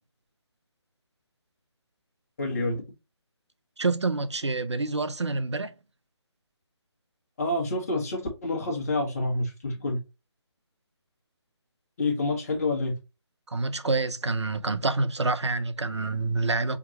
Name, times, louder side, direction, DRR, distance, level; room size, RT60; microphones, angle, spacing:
voice 1, 2.4-2.8 7.4-10.0 12.0-12.9, left 2 dB, 35° left, 1.5 m, -28 dB
voice 2, 3.8-5.7 13.5-16.8, right 3 dB, 75° right, 0.7 m, -27 dB
4.5 x 3.6 x 2.9 m
figure-of-eight pair, 150°, 15 cm